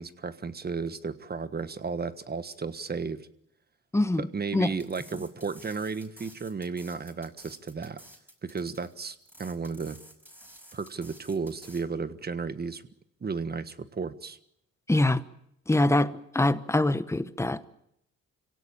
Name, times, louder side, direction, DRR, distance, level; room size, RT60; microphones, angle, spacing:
voice 1, 0.0-3.3 4.3-8.0 8.4-10.0 10.7-12.8 13.2-14.4, right 5 dB, 30° right, 1.4 m, -34 dB
voice 2, 3.9-4.3 4.5-4.7 14.9-15.2 15.7-17.7, left 2 dB, 10° left, 1.1 m, -24 dB
sound 1, 4.7-11.9, equal, 5° right, 5.6 m, -52 dB
25.5 x 17.0 x 8.8 m
cardioid pair, 90°, 30 cm